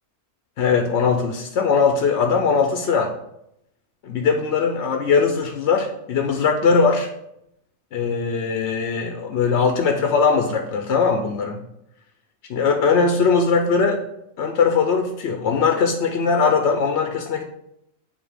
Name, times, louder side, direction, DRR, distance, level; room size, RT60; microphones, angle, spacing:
voice 1, 0.6-3.1 4.0-7.1 7.9-11.6 12.5-14.0 14.4-17.4, left 5 dB, 65° left, 4 dB, 0.8 m, -20 dB
7.3 x 2.8 x 4.9 m, 0.79 s
omnidirectional pair, 1.4 m